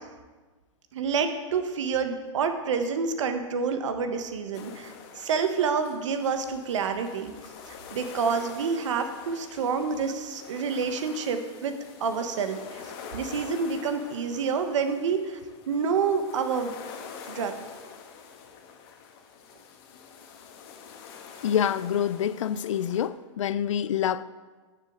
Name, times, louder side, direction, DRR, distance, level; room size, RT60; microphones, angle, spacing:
voice 1, 0.9-7.3 7.7-11.7 12.0-15.4 15.7-16.7 17.3-17.5, right 5 dB, 75° right, 1.2 m, -28 dB
sound 1, 4.5-23.1, left 6 dB, 50° left, 1.3 m, -46 dB
voice 2, 21.4-24.2, left 9 dB, 90° left, 0.5 m, -26 dB
14.5 x 6.7 x 3.7 m
hypercardioid pair, 140°, 16 cm